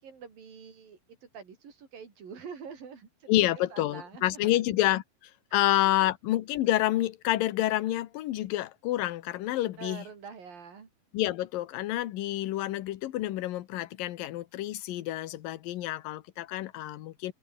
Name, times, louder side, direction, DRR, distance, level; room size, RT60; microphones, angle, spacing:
voice 1, 0.0-3.3 3.7-4.6 5.5-6.1 9.8-10.9, right 6 dB, 90° right, 5.9 m, -46 dB
voice 2, 3.3-5.0 5.5-10.0 11.1-17.3, left 15 dB, 85° left, 2.8 m, -28 dB
omnidirectional pair, 3.9 m